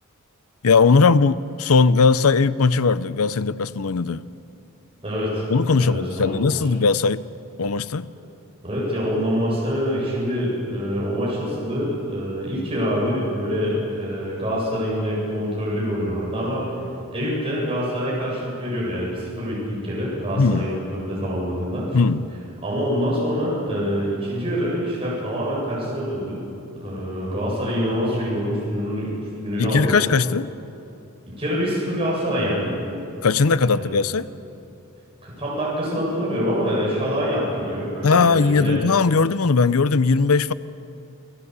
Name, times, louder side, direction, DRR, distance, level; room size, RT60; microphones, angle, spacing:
voice 1, 0.6-4.2 5.5-7.2 7.6-8.1 20.4-20.7 21.9-22.2 29.6-30.5 33.2-34.3 38.0-40.5, left 4 dB, 75° left, 16 dB, 0.6 m, -19 dB
voice 2, 5.0-5.5 5.8-6.4 8.6-16.7 17.1-21.8 22.6-26.4 26.8-30.0 31.4-32.8 33.7-33.9 35.2-38.8, equal, 25° right, -6 dB, 7.8 m, -25 dB
29.5 x 16.5 x 8.2 m, 2.7 s
head